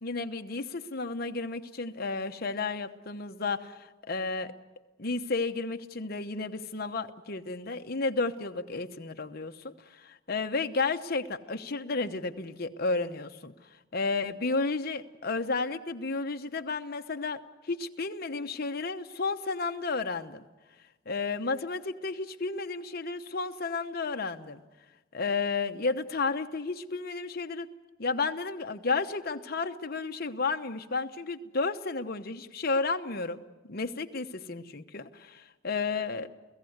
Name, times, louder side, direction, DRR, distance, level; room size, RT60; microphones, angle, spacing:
voice 1, 0.0-4.5 5.0-13.5 13.9-20.4 21.1-24.6 25.1-27.7 28.0-33.4 33.6-36.3, left 3 dB, 50° left, 6 dB, 1.0 m, -32 dB
29.5 x 16.5 x 8.0 m, 1.2 s
head